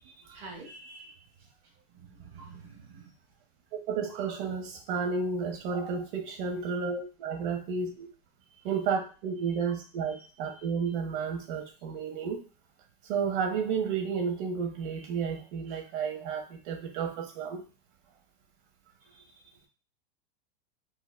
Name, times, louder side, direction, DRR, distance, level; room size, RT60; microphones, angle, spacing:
voice 1, 0.1-1.3 1.9-3.1 8.5-8.8 9.4-9.6 10.1-10.7 15.0-15.8 19.0-19.4, right 3 dB, 70° right, 1 dB, 1.5 m, -50 dB
voice 2, 3.9-8.1 8.6-12.4 13.1-17.6, right 5 dB, 55° right, 4 dB, 0.9 m, -32 dB
4.0 x 2.1 x 2.2 m, 0.35 s
hypercardioid pair, 120°, 32 cm